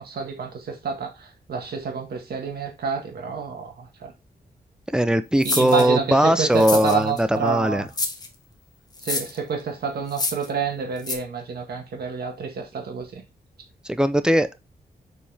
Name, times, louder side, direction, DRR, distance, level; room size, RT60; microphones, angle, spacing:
voice 1, 0.0-4.1 5.4-7.9 9.0-13.2, right 5 dB, 80° right, 1.8 m, -28 dB
voice 2, 4.9-7.8 13.8-14.6, right 1 dB, 5° right, 0.5 m, -20 dB
sound 1, 5.4-5.8 6.5-7.2 7.9-8.3 9.0-9.4 10.1-10.5 11.0-11.1, left 3 dB, 25° left, 1.2 m, -27 dB
7.3 x 4.6 x 3.4 m
wide cardioid pair, 160°, 16 cm